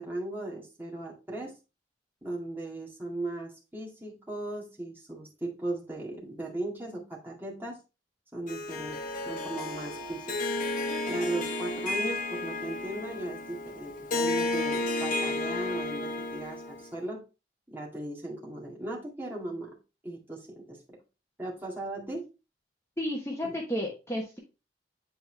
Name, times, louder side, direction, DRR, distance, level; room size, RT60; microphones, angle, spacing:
voice 1, 0.0-1.5 2.2-7.8 8.3-9.0 9.3-10.4 11.1-17.2 17.7-19.7 20.0-21.0 21.4-22.3 23.4-23.6, right 2 dB, 10° right, -4 dB, 2.0 m, -37 dB
Harp, 8.5-16.9, left 2 dB, 50° left, 0.9 m, -32 dB
voice 2, 23.0-24.4, equal, 15° left, -1 dB, 1.1 m, -32 dB
7.8 x 4.3 x 3.3 m, 0.29 s
head